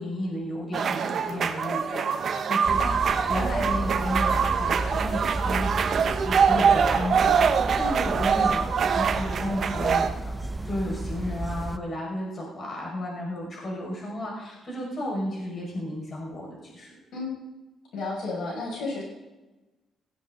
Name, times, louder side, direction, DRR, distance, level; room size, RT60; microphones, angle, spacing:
voice 1, 0.0-2.1 2.5-10.1 10.6-16.9, left 1 dB, 40° left, -2 dB, 5.5 m, -33 dB
sound 1, 0.7-10.1, right 6 dB, 55° right, 1.0 m, -24 dB
sound 2, 2.6-11.8, right 2 dB, 15° right, 0.9 m, -32 dB
voice 2, 17.9-19.0, left 3 dB, 75° left, -3 dB, 6.5 m, -32 dB
17.5 x 15.5 x 3.9 m, 1.1 s
cardioid pair, 90°, 0 cm